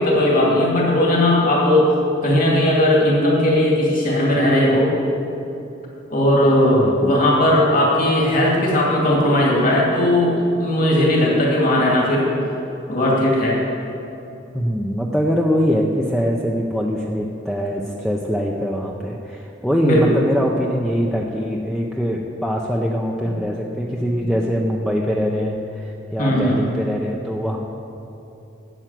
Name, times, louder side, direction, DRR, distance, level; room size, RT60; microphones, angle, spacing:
voice 1, 0.0-1.9 2.2-4.9 6.1-12.3 12.9-13.6 19.8-20.2 26.2-26.8, left 1 dB, 50° left, -3 dB, 2.5 m, -17 dB
voice 2, 6.7-7.1 14.5-27.6, equal, ahead, -2 dB, 0.6 m, -23 dB
9.0 x 8.0 x 7.5 m, 2.9 s
head